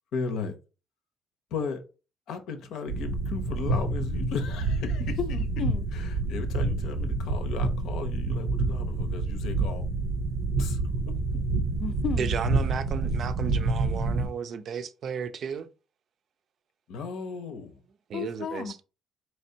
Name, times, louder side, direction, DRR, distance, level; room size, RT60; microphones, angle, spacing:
voice 1, 0.1-0.5 1.5-1.8 2.3-5.2 5.9-9.9 10.6-10.8 16.9-17.7, left 5 dB, 75° left, 0.8 m, -35 dB
sound 1, 2.9-14.3, right 3 dB, 90° right, 0.7 m, -28 dB
voice 2, 5.0-5.9 11.8-12.3 18.1-18.7, left 7 dB, 50° left, 0.5 m, -33 dB
voice 3, 12.1-15.7 18.1-18.8, right 6 dB, 45° right, 0.4 m, -34 dB
4.4 x 3.3 x 2.7 m
cardioid pair, 160°, 0 cm